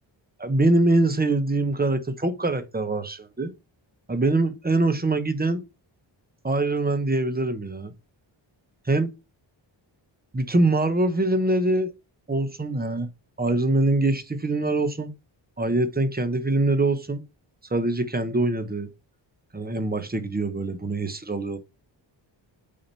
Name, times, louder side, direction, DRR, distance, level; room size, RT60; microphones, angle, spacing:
voice 1, 0.4-3.5 4.1-5.6 6.4-7.9 8.9-9.1 10.3-11.9 12.3-13.1 13.4-15.1 15.6-17.2 17.7-18.9 19.5-21.6, right 2 dB, 20° right, 1.1 m, -23 dB
8.6 x 2.9 x 5.5 m
wide cardioid pair, 95°, 46 cm